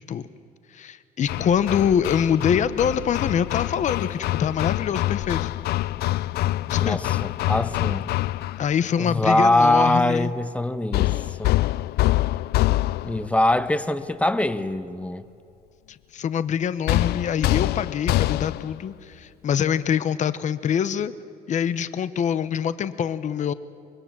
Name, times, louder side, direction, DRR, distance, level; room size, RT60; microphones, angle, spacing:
voice 1, 0.7-5.5 6.7-7.0 8.6-10.3 15.9-21.1 21.5-23.5, left 8 dB, 45° left, 0.8 m, -24 dB
Hammer, 1.3-8.7 10.9-13.3 16.9-18.8, left 16 dB, 70° left, 0.4 m, -25 dB
voice 2, 6.8-8.1 9.0-11.6 13.0-15.3, left 1 dB, 5° left, 0.9 m, -23 dB
25.0 x 21.0 x 7.3 m
cardioid pair, 110°, 17 cm